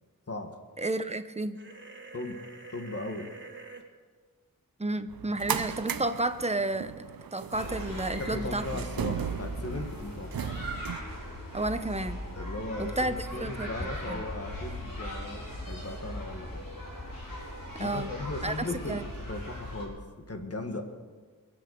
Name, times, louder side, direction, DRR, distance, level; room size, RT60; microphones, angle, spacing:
voice 1, 0.8-1.6 4.8-7.0 7.3-8.7 11.5-12.2 12.8-14.2 17.7-18.1 18.4-19.0, right 2 dB, 20° right, 10 dB, 0.8 m, -31 dB
sound 1, 1.5-3.8, right 3 dB, 35° right, 2.0 m, -46 dB
voice 2, 2.7-3.3 8.2-10.7 12.3-16.7 17.8-19.0 19.3-20.0 20.3-20.8, left 2 dB, 45° left, 4 dB, 1.9 m, -37 dB
sound 2, 5.1-11.0, right 8 dB, 85° right, 0.7 m, -36 dB
sound 3, 7.5-19.8, left 1 dB, 75° left, 4.3 m, -39 dB
22.5 x 8.1 x 6.6 m, 1.5 s
wide cardioid pair, 80°, 34 cm